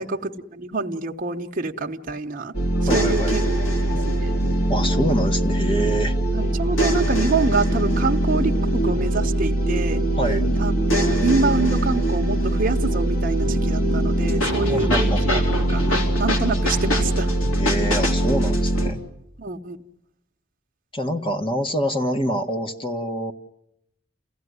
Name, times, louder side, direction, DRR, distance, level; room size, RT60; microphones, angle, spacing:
voice 1, 0.0-2.5 2.9-3.5 3.9-4.0 4.2-4.3 6.3-10.0 10.6-17.3 19.4-19.8, right 3 dB, 40° right, 2 dB, 1.0 m, -26 dB
sound 1, 2.5-18.9, right 1 dB, 85° left, 3.8 m, -21 dB
voice 2, 2.9-3.4 4.7-6.2 10.2-10.4 14.7-15.4 17.6-19.0 20.9-23.3, equal, 25° left, 7 dB, 1.5 m, -26 dB
29.5 x 16.0 x 9.6 m, 0.82 s
head